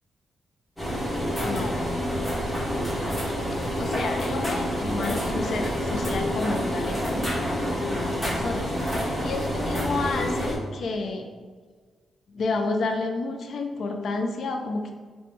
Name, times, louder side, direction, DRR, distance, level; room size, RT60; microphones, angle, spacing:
sound 1, 0.8-10.6, equal, 10° left, 1.0 m, -28 dB
voice 1, 1.4-1.8 3.2-11.3 12.3-14.9, left 3 dB, 55° left, 4 dB, 0.4 m, -31 dB
3.4 x 2.2 x 4.0 m, 1.5 s
wide cardioid pair, 155°, 0 cm